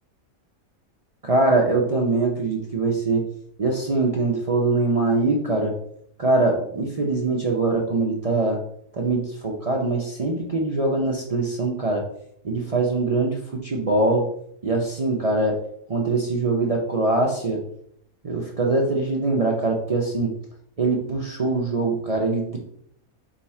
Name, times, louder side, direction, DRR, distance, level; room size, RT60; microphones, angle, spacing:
voice 1, 1.2-3.2 3.6-5.7 6.2-8.6 8.9-12.0 12.4-14.3 14.6-15.6 15.9-17.6 18.2-20.3 20.8-22.6, right 3 dB, 45° right, -1 dB, 0.4 m, -23 dB
5.1 x 2.4 x 4.2 m, 0.67 s
omnidirectional pair, 1.5 m